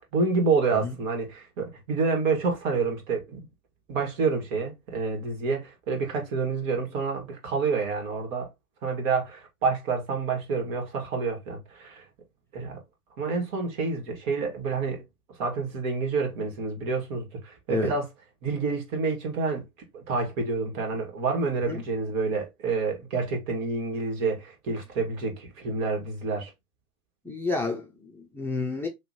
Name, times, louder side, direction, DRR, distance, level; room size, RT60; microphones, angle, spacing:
voice 1, 0.1-3.4 3.9-8.5 8.8-12.0 12.5-12.8 13.2-15.0 15.4-18.1 18.4-19.6 19.9-26.5, right 4 dB, 60° right, 2.0 m, -28 dB
voice 2, 27.2-28.9, left 3 dB, 5° left, 0.4 m, -30 dB
3.1 x 3.0 x 4.0 m
hypercardioid pair, 105°, 45 cm